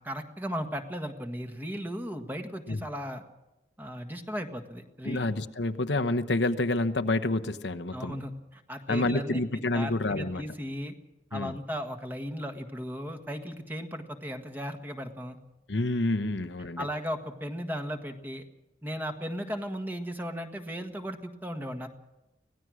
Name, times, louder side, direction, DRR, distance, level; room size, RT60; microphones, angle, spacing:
voice 1, 0.0-3.2 3.8-5.3 7.9-9.4 9.7-10.9 11.3-15.4 16.8-18.4 18.8-21.9, equal, 10° right, 5 dB, 1.6 m, -36 dB
voice 2, 5.0-8.2 8.9-10.4 11.3-11.5 15.7-16.9, left 2 dB, 75° left, 8 dB, 1.0 m, -28 dB
25.0 x 18.0 x 6.4 m, 0.96 s
head